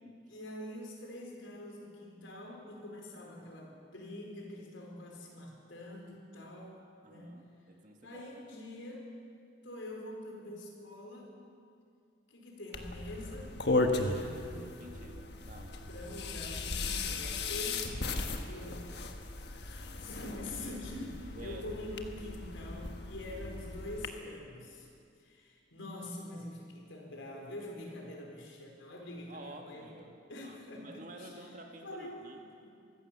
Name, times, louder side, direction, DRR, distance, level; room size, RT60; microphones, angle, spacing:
voice 1, 0.3-6.8 7.1-7.4 8.0-9.0 9.6-11.3 12.3-13.5 14.1-14.8 15.9-17.9 18.5-18.9 19.7-24.9 25.2-29.9 30.3-31.5 31.8-32.7, left 1 dB, 85° left, 1 dB, 4.3 m, -45 dB
voice 2, 7.0-8.3 13.9-14.5 14.8-15.8 21.4-21.7 29.3-32.4, right 1 dB, 45° right, 3 dB, 1.9 m, -51 dB
sound 1, 12.7-24.1, left 3 dB, 60° left, 1.4 m, -36 dB
23.5 x 15.5 x 7.3 m, 2.4 s
head